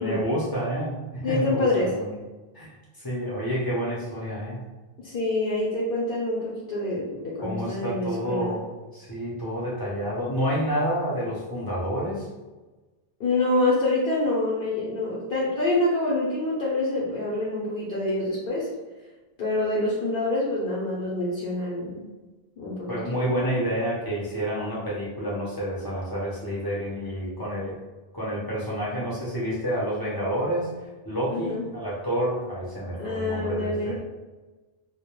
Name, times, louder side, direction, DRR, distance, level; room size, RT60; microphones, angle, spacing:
voice 1, 0.0-2.1 2.5-2.7 3.0-4.6 7.4-12.3 22.9-27.8 28.1-34.0, equal, 30° left, -7 dB, 0.5 m, -29 dB
voice 2, 1.2-1.9 5.0-8.5 13.2-18.7 19.4-22.1 22.6-23.2 31.3-31.7 33.0-34.0, left 2 dB, 70° left, -6 dB, 0.8 m, -26 dB
2.2 x 2.1 x 2.9 m, 1.2 s
omnidirectional pair, 1.0 m